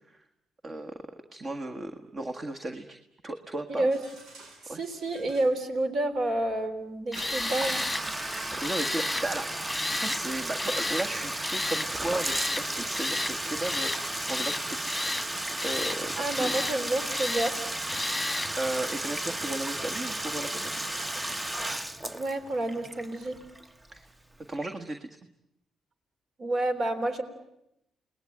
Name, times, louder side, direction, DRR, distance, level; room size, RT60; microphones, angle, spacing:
voice 1, 0.6-0.9 1.3-3.0 3.2-4.0 4.7-4.8 8.6-9.5 9.9-15.2 15.6-16.5 18.6-20.8 23.9-24.0 24.5-25.1, right 2 dB, 35° right, 5 dB, 1.7 m, -35 dB
sound 1, 3.9-5.5 7.1-9.1 12.3-13.7 14.9-15.0, right 2 dB, 85° right, 6.4 m, -47 dB
voice 2, 4.6-7.8 16.2-17.6 22.1-23.4 26.4-27.2, right 2 dB, 55° right, 8 dB, 3.5 m, -29 dB
Tools, 7.1-8.0 8.6-9.3 9.7-10.2 10.6-11.1 11.4-11.9 12.2-12.7 12.9-13.3 13.6-14.0 14.3-15.3 15.6-16.0 16.3-16.8 17.1-17.5 17.9-18.5, left 2 dB, 10° left, 1.5 m, -32 dB
Bathtub (filling or washing), 7.2-24.0, right 1 dB, 15° right, 1.0 m, -34 dB
29.0 x 20.0 x 9.0 m, 0.85 s
cardioid pair, 90°, 0 cm